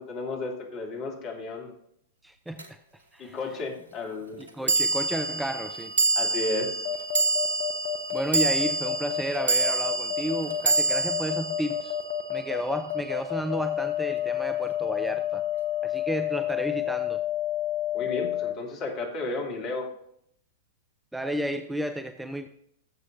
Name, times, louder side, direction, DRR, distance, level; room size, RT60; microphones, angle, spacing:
voice 1, 0.0-1.7 3.2-4.4 6.1-6.8 17.9-19.9, left 2 dB, 35° left, 1 dB, 2.8 m, -33 dB
voice 2, 2.2-2.8 3.1-3.4 4.4-5.9 8.1-12.0 12.3-15.5 15.8-17.2 21.1-22.5, right 1 dB, 5° right, 9 dB, 0.6 m, -32 dB
sound 1, 2.6-2.7 4.7-13.1, right 3 dB, 70° right, 1.3 m, -27 dB
sound 2, 6.8-18.5, left 12 dB, 60° left, 1.0 m, -29 dB
18.5 x 7.7 x 2.7 m, 0.70 s
figure-of-eight pair, 100°, 0 cm